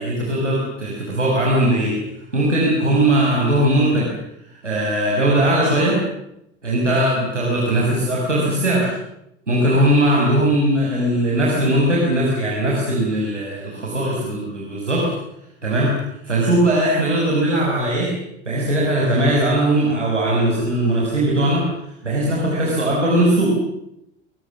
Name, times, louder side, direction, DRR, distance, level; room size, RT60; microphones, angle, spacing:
voice 1, 0.0-2.0 2.3-4.1 4.6-6.0 6.6-8.9 9.5-15.1 15.6-15.9 16.2-18.1 18.5-21.7 22.0-23.6, right 1 dB, 80° right, -3 dB, 6.1 m, -19 dB
26.5 x 20.0 x 7.5 m, 0.82 s
figure-of-eight pair, 80°, 35 cm